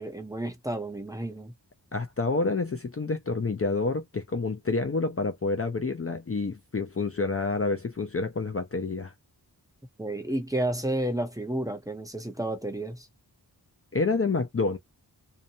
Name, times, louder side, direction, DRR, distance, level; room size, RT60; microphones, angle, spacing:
voice 1, 0.0-1.5 10.0-13.1, right 1 dB, 10° right, 0.8 m, -31 dB
voice 2, 1.9-9.1 13.9-14.8, left 3 dB, 35° left, 0.5 m, -28 dB
2.8 x 2.0 x 2.6 m
wide cardioid pair, 45°, 42 cm